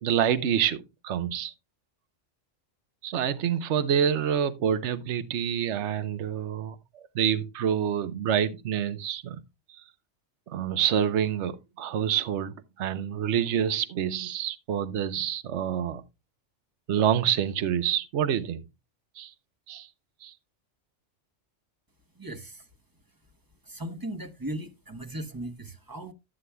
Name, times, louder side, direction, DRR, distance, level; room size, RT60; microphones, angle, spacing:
voice 1, 0.0-1.5 3.0-9.4 10.5-16.0 16.9-18.6 19.2-19.3 19.7-19.9 20.2-20.3, right 9 dB, 70° right, 1.1 m, -27 dB
voice 2, 22.1-22.7 23.6-26.1, right 1 dB, 20° right, 0.9 m, -37 dB
12.5 x 9.8 x 2.2 m
omnidirectional pair, 1.2 m